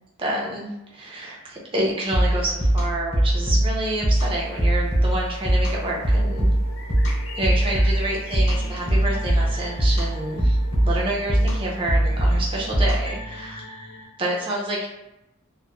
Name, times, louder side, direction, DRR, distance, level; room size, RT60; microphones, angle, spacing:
voice 1, 0.2-6.5 7.3-10.6 10.8-13.6 14.2-14.9, right 1 dB, 25° right, -3 dB, 0.5 m, -28 dB
sound 1, 2.1-13.3, right 1 dB, 30° left, 1.0 m, -22 dB
sound 2, 4.1-13.1, left 3 dB, 60° left, 0.5 m, -43 dB
sound 3, 6.1-14.1, left 2 dB, 80° left, 1.1 m, -43 dB
2.9 x 2.1 x 2.2 m, 0.91 s
head